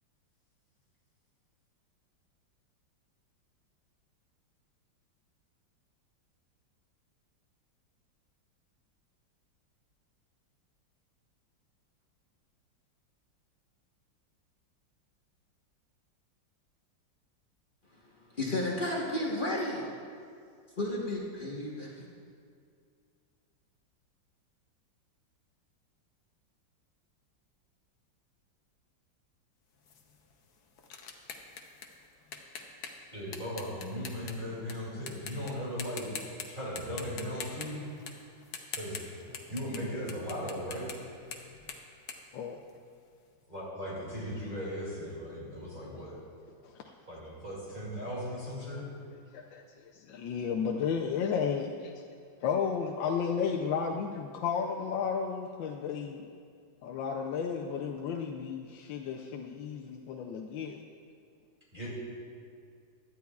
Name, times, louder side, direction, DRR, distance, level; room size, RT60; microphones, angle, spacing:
voice 1, 18.3-19.8 20.8-22.0, left 1 dB, 30° left, -4 dB, 1.2 m, -32 dB
sound 1, 29.9-34.7 35.1-35.5 35.8-36.5 36.8-43.1, left 6 dB, 60° left, 1.3 m, -43 dB
voice 2, 33.1-36.1 36.4-37.8 38.7-39.1 39.5-40.9 43.5-46.2 47.1-48.8 61.7-61.9, equal, 25° right, -7 dB, 2.6 m, -37 dB
voice 3, 49.9-51.9 52.4-56.2 56.8-60.8, left 6 dB, 85° left, 2 dB, 1.4 m, -33 dB
17.5 x 11.5 x 2.4 m, 2.3 s
omnidirectional pair, 2.0 m